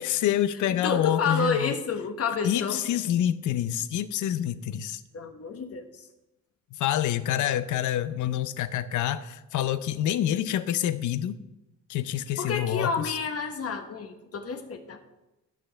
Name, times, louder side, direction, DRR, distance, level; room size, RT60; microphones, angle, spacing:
voice 1, 0.0-1.8 2.4-5.0 6.7-11.4 11.9-13.2, left 11 dB, 75° left, 13 dB, 0.6 m, -27 dB
voice 2, 0.8-2.8 5.1-6.1 12.4-15.0, left 5 dB, 50° left, 6 dB, 1.2 m, -30 dB
16.5 x 5.6 x 3.4 m, 0.98 s
cardioid pair, 90°, 30 cm